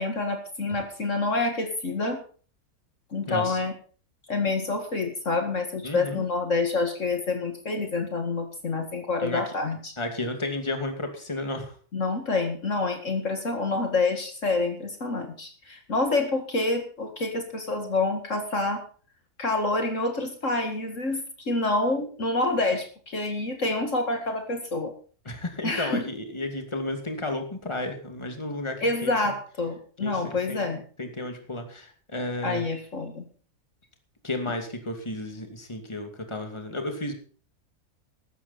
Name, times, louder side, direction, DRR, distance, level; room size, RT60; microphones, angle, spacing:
voice 1, 0.0-2.2 3.1-3.7 4.3-9.9 11.9-18.8 19.4-24.9 25.6-26.0 28.8-30.8 32.4-33.2, left 3 dB, 55° left, 5 dB, 2.3 m, -27 dB
voice 2, 3.3-3.6 5.8-6.2 9.2-9.6 10.0-11.7 25.2-29.1 30.0-32.6 34.2-37.1, left 2 dB, 20° left, 5 dB, 2.5 m, -33 dB
15.5 x 12.5 x 4.2 m, 0.42 s
omnidirectional pair, 1.6 m